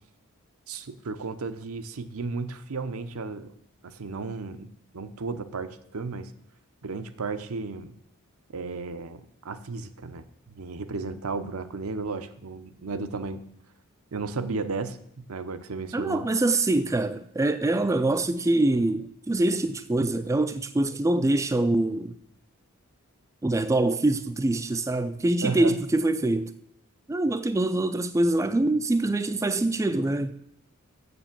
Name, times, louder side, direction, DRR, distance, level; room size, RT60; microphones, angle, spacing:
voice 1, 0.7-3.5 3.8-4.7 4.9-6.3 6.8-7.9 8.5-10.3 10.5-13.4 14.1-15.0 15.3-16.3 25.4-25.8, right 4 dB, 80° right, 0.7 m, -34 dB
voice 2, 15.9-22.2 23.4-26.5 27.1-30.3, right 2 dB, 15° right, 0.3 m, -24 dB
7.0 x 6.9 x 7.3 m
head